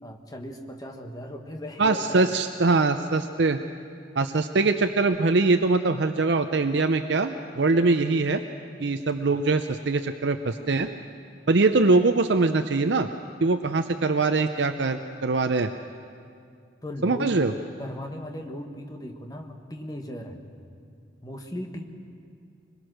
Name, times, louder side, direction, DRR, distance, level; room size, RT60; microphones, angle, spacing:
voice 1, 0.0-2.3 16.8-17.4 17.8-20.4 21.2-21.8, left 1 dB, 20° left, 3 dB, 1.6 m, -37 dB
voice 2, 1.8-3.6 4.2-8.4 8.8-10.9 11.5-13.1 13.4-15.7 17.0-17.5, right 3 dB, 60° right, 7 dB, 0.6 m, -22 dB
24.0 x 21.5 x 6.4 m, 2.3 s
head